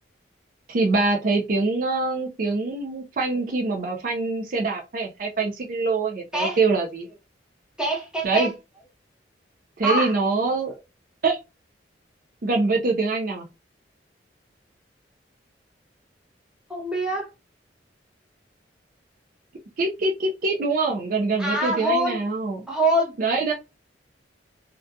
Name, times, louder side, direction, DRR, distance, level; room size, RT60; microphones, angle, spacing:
voice 1, 0.7-7.1 8.2-8.5 9.8-10.7 11.2-11.4 12.4-13.5 19.8-22.7 23.2-23.5, right 3 dB, 50° right, 0.4 m, -24 dB
voice 2, 7.8-8.5 9.8-10.1 16.7-17.3 21.4-22.2 22.7-23.1, right 1 dB, 5° right, 0.8 m, -24 dB
2.3 x 2.2 x 2.6 m
head